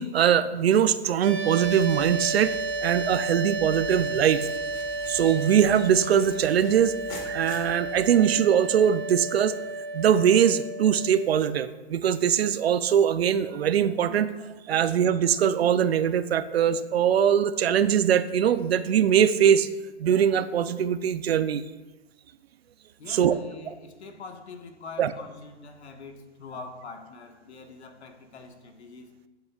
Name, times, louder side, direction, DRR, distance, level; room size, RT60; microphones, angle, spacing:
voice 1, 0.0-2.6 2.8-4.5 5.1-6.9 7.3-9.5 9.9-14.3 14.7-19.7 20.0-21.6 23.1-23.3 23.7-23.8 25.0-25.1, right 9 dB, 65° right, 13 dB, 0.6 m, -22 dB
sound 1, 1.2-11.3, right 2 dB, 30° right, 2.0 m, -33 dB
sound 2, 1.4-8.4, left 1 dB, 30° left, 1.8 m, -46 dB
voice 2, 23.0-29.1, left 4 dB, 80° left, 4 dB, 1.5 m, -44 dB
11.0 x 7.7 x 2.4 m, 1.1 s
hypercardioid pair, 160°, 33 cm